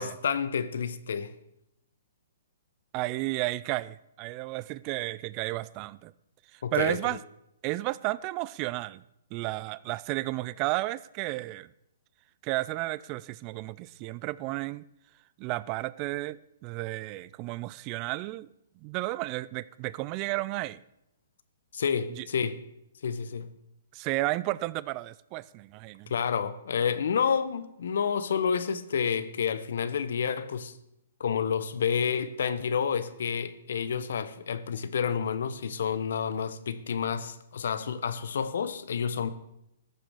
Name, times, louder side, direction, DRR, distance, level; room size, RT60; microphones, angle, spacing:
voice 1, 0.0-1.3 6.6-7.0 21.7-22.5 23.0-23.5 26.1-30.7 31.2-39.3, left 7 dB, 70° left, 1.0 m, -29 dB
voice 2, 2.9-6.1 6.5-7.2 7.6-9.0 9.3-11.7 12.4-14.8 15.4-18.5 18.8-20.8 22.2-22.3 23.9-26.1, right 19 dB, 35° right, 0.4 m, -32 dB
14.5 x 6.8 x 6.3 m
hypercardioid pair, 135°, 0 cm